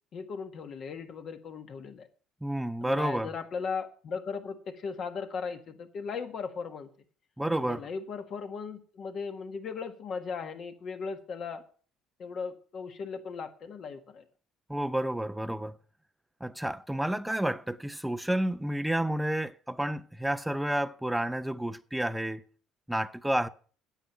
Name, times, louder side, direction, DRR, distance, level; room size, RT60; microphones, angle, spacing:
voice 1, 0.1-2.1 2.8-6.9 7.6-11.6 12.2-14.2, left 5 dB, 50° left, 1.5 m, -37 dB
voice 2, 2.4-3.3 7.4-7.9 14.7-15.7 16.4-22.4 22.9-23.5, right 1 dB, 5° right, 0.6 m, -30 dB
9.0 x 8.7 x 6.8 m
cardioid pair, 115°, 0 cm